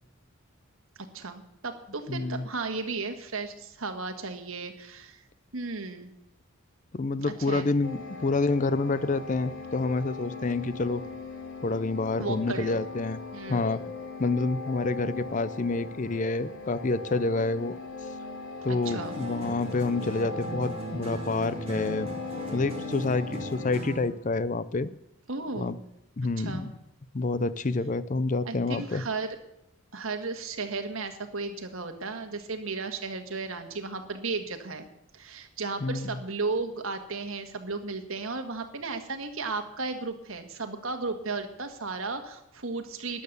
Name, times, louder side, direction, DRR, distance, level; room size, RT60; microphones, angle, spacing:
voice 1, 1.1-5.2 5.5-6.1 7.3-7.7 12.2-12.8 13.3-13.9 18.7-19.2 25.3-25.8 26.4-26.7 28.4-29.3 29.9-34.9 35.1-43.2, right 3 dB, 70° right, 6 dB, 1.7 m, -34 dB
voice 2, 2.1-2.5 6.9-11.0 11.6-13.2 13.5-13.8 14.2-17.8 18.6-22.1 22.5-24.9 25.6-25.8 26.2-26.7 27.1-29.0 35.8-36.2, left 3 dB, 35° left, 16 dB, 0.5 m, -28 dB
sound 1, 7.8-23.7, left 4 dB, 55° left, 1.3 m, -39 dB
sound 2, 18.8-24.2, right 1 dB, 25° right, 2.8 m, -38 dB
13.5 x 10.0 x 6.8 m, 0.80 s
head